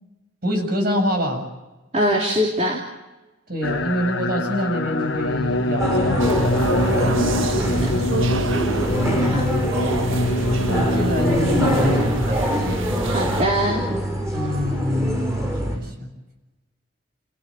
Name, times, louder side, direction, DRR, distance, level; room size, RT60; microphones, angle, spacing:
voice 1, 0.4-1.5 3.5-6.7 7.4-8.0 9.1-9.7 10.7-12.6 14.3-16.1, equal, 50° right, 4 dB, 7.3 m, -26 dB
voice 2, 1.9-2.8 7.4-7.9 9.2-9.5 13.1-13.8, equal, 35° right, -1 dB, 3.2 m, -23 dB
sound 1, 3.6-12.0, left 1 dB, 75° left, 1.3 m, -24 dB
sound 2, 5.8-15.8, equal, 15° right, 7.5 m, -24 dB
sound 3, 6.2-13.4, right 3 dB, 90° right, 1.5 m, -29 dB
30.0 x 16.0 x 7.6 m, 1.1 s
head